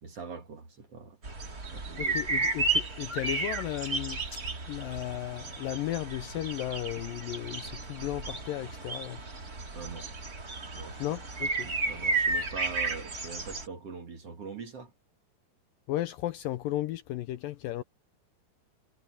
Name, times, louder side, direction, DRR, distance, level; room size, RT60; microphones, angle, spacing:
voice 1, 0.0-1.2 1.7-2.1 9.7-10.1 10.7-11.0 11.6-14.9, right 5 dB, 45° right, 2.6 m, -42 dB
sound 1, 1.2-13.7, right 3 dB, 25° right, 2.9 m, -33 dB
voice 2, 2.0-9.2 11.0-11.7 15.9-17.8, left 14 dB, 80° left, 2.2 m, -35 dB
omnidirectional pair, 4.5 m